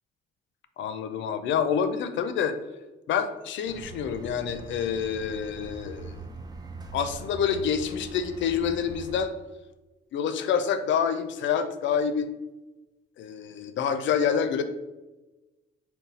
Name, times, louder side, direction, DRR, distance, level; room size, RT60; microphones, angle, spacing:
voice 1, 0.8-2.6 3.1-6.1 6.9-9.3 10.1-12.3 13.2-14.6, left 7 dB, 70° left, 10 dB, 0.4 m, -27 dB
sound 1, 3.7-9.3, right 3 dB, 20° right, 0.5 m, -42 dB
3.9 x 2.2 x 4.0 m, 1.1 s
cardioid pair, 90°, 20 cm